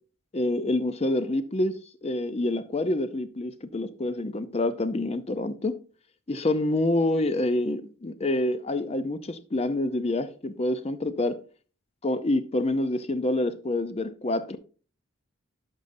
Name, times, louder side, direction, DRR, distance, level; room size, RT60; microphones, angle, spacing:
voice 1, 0.3-5.8 6.3-11.4 12.0-14.6, left 1 dB, 30° left, 0.5 m, -27 dB
11.5 x 5.3 x 2.6 m
head